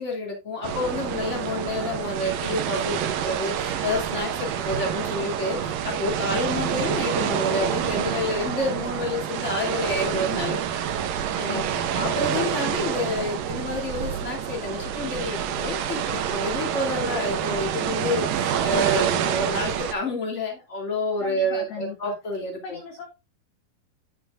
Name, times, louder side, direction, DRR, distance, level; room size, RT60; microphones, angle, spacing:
voice 1, 0.0-10.6 11.4-11.6 11.9-22.8, left 2 dB, 20° left, 2.7 m, -29 dB
sound 1, 0.6-19.9, right 9 dB, 75° right, 2.6 m, -27 dB
voice 2, 11.5-11.9 21.2-22.2 22.6-23.1, left 5 dB, 65° left, 2.1 m, -37 dB
9.8 x 8.6 x 2.6 m
omnidirectional pair, 4.2 m